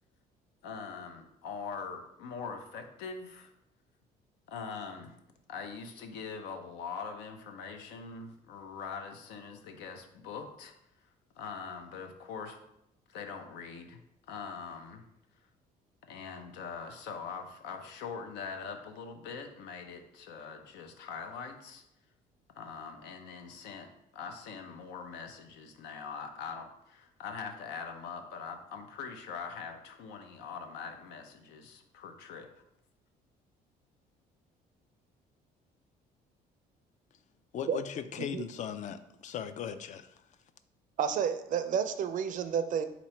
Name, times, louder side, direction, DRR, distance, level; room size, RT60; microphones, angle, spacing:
voice 1, 0.6-3.5 4.5-5.1 5.5-10.7 11.4-12.6 13.1-14.0 14.3-15.0 16.1-21.8 22.6-23.9 24.1-32.5, left 5 dB, 90° left, 5 dB, 0.6 m, -42 dB
voice 2, 37.5-40.2, left 8 dB, 45° left, 11 dB, 0.4 m, -38 dB
voice 3, 41.0-42.9, right 7 dB, 50° right, 10 dB, 0.4 m, -30 dB
3.9 x 3.0 x 4.3 m, 0.80 s
cardioid pair, 110°, 17 cm